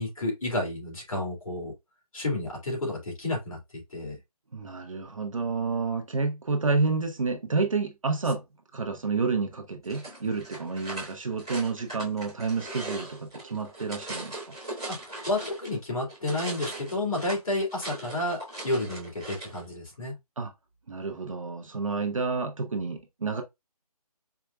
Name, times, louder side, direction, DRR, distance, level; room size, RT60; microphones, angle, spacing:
voice 1, 0.0-1.7 2.1-4.2 14.9-20.1, left 2 dB, 60° left, 2.0 m, -31 dB
voice 2, 4.5-8.4 8.7-14.5 20.4-20.5 20.9-23.4, right 4 dB, 55° right, 0.8 m, -29 dB
sound 1, 9.8-15.8 16.1-19.6, right 2 dB, 5° right, 0.6 m, -40 dB
4.7 x 2.1 x 2.3 m
hypercardioid pair, 180°, 20 cm